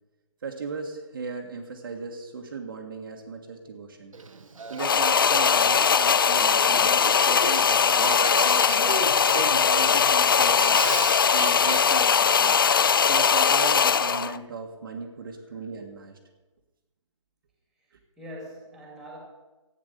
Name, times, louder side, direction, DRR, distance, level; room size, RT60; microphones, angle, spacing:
voice 1, 0.4-4.1 4.7-9.1 9.5-10.8 11.3-12.6 13.1-16.2, right 4 dB, 40° right, 2 dB, 1.6 m, -37 dB
Male speech man speaking / Female speech woman speaking / Conversation, 4.1-11.8, right 4 dB, 90° right, 1.5 m, -36 dB
sound 1, 4.8-14.4, left 7 dB, 45° left, 0.4 m, -20 dB
voice 2, 17.8-19.2, equal, ahead, -2 dB, 2.6 m, -44 dB
14.0 x 9.3 x 6.7 m, 1.2 s
hypercardioid pair, 165°, 17 cm